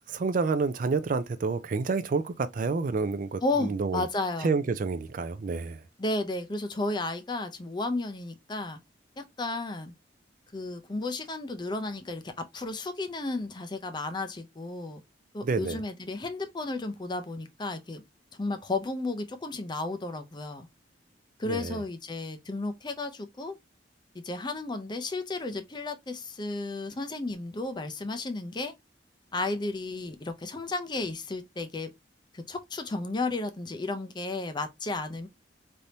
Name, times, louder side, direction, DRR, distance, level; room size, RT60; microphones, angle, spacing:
voice 1, 0.1-4.0 4.4-5.8 15.4-15.8 21.5-21.8, right 4 dB, 45° right, 0.4 m, -29 dB
voice 2, 3.4-4.5 6.0-8.8 9.2-9.9 10.5-15.0 15.3-18.0 18.4-20.7 21.4-23.5 24.1-28.7 29.3-31.9 32.3-35.3, left 2 dB, 25° left, 0.5 m, -33 dB
3.4 x 2.7 x 2.7 m
head